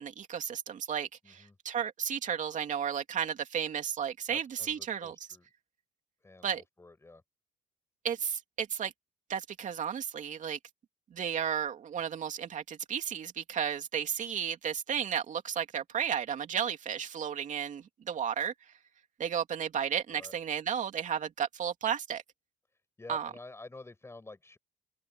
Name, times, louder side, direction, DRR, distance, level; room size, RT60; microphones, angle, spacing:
voice 1, 0.0-5.1 6.4-6.6 8.0-8.9 9.3-10.6 11.1-18.5 19.2-22.2 23.1-23.3, right 8 dB, 50° right, 2.7 m, -33 dB
voice 2, 1.2-1.6 4.3-5.5 6.2-7.2 20.1-20.3 23.0-24.6, left 2 dB, 15° left, 6.8 m, -50 dB
open air
cardioid pair, 110°, 17 cm